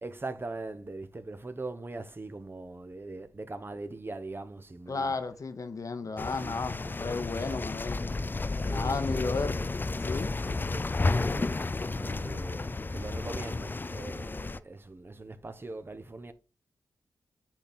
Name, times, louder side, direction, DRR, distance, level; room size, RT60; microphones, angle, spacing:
voice 1, 0.0-5.2 6.0-7.7 8.6-9.7 10.5-16.3, right 2 dB, 30° right, 0.9 m, -41 dB
voice 2, 4.9-8.0 8.6-9.6 10.0-10.3, left 4 dB, 50° left, 1.0 m, -33 dB
sound 1, 6.2-14.6, left 3 dB, 25° left, 0.4 m, -32 dB
8.8 x 4.3 x 4.3 m
cardioid pair, 55°, 7 cm